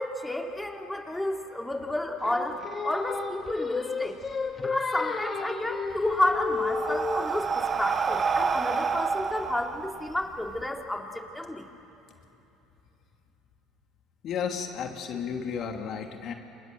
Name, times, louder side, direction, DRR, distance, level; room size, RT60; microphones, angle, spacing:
voice 1, 0.0-2.6 2.8-4.1 4.6-11.6, left 1 dB, 5° left, 1 dB, 3.6 m, -31 dB
Singing, 2.2-7.4, left 4 dB, 30° left, 1.8 m, -32 dB
Breathing, 5.9-10.6, right 5 dB, 35° right, 1.3 m, -29 dB
voice 2, 14.2-16.3, left 7 dB, 55° left, 4 dB, 2.7 m, -33 dB
29.0 x 28.5 x 6.9 m, 3.0 s
hypercardioid pair, 70°, 0 cm